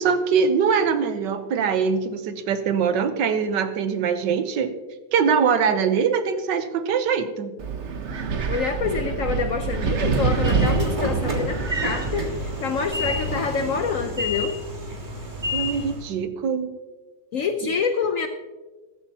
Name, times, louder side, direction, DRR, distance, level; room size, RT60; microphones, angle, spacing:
voice 1, 0.0-4.7 5.1-7.6 15.5-16.7, right 6 dB, 75° right, 10 dB, 1.5 m, -23 dB
Wind, 7.6-12.9, right 5 dB, 50° right, 1.0 m, -26 dB
voice 2, 8.5-14.5 17.3-18.3, left 5 dB, 65° left, 7 dB, 0.8 m, -26 dB
Train / Sliding door, 9.6-16.1, equal, 25° right, 1.7 m, -30 dB
14.0 x 13.0 x 2.8 m, 1.2 s
omnidirectional pair, 2.0 m